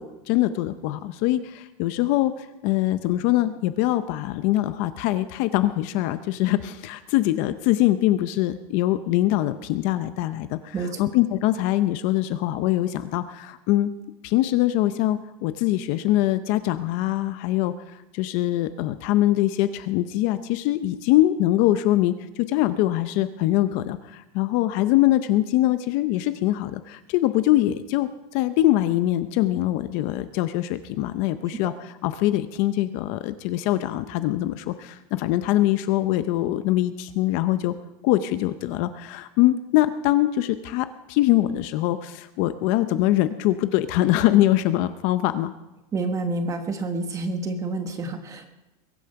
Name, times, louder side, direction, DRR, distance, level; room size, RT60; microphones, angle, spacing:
voice 1, 0.0-13.9 14.2-31.7 32.0-37.7 38.0-45.5, left 15 dB, 40° left, 12 dB, 0.6 m, -23 dB
voice 2, 45.9-48.5, right 3 dB, 15° right, 7 dB, 1.3 m, -28 dB
22.0 x 8.7 x 5.8 m, 1.0 s
supercardioid pair, 170°, 19 cm